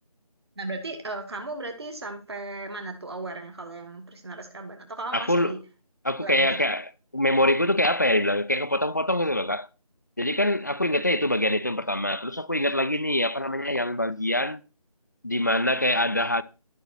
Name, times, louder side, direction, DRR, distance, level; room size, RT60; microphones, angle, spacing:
voice 1, 0.6-5.6 6.2-6.6, right 2 dB, 45° right, 2.2 m, -36 dB
voice 2, 5.1-5.5 6.0-9.7 10.2-14.6 15.2-16.4, left 1 dB, 30° left, 0.4 m, -24 dB
12.5 x 8.1 x 4.4 m
figure-of-eight pair, 165°, 19 cm